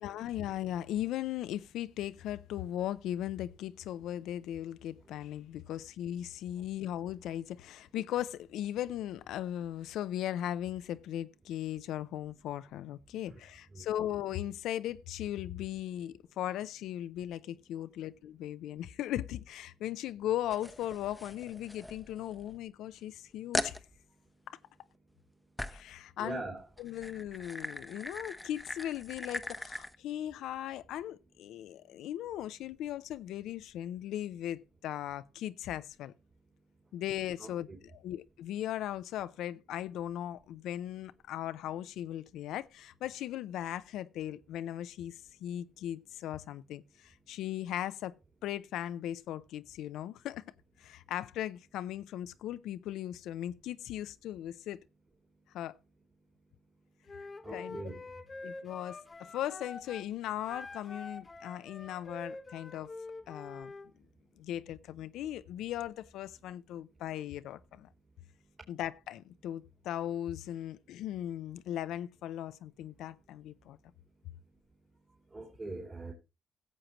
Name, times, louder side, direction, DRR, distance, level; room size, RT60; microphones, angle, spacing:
voice 1, 0.0-23.8 24.5-24.6 25.7-26.4 26.8-36.1 36.9-48.1 48.4-50.4 50.8-54.8 55.5-55.8 57.5-57.9 58.4-62.9 63.3-63.7 64.4-67.9 68.7-73.8, left 12 dB, 85° left, 0.4 m, -38 dB
sound 1, 20.5-22.6 23.0-23.1 23.5-23.8 25.6-25.9 26.7-30.0, left 1 dB, 5° left, 0.8 m, -40 dB
voice 2, 26.2-26.6 37.4-37.8 57.4-58.0 75.3-76.1, right 3 dB, 30° right, 2.8 m, -42 dB
Wind instrument woodwind instrument, 57.1-60.1 60.5-63.9, left 3 dB, 25° left, 1.2 m, -46 dB
16.5 x 7.6 x 2.9 m
cardioid pair, 90°, 0 cm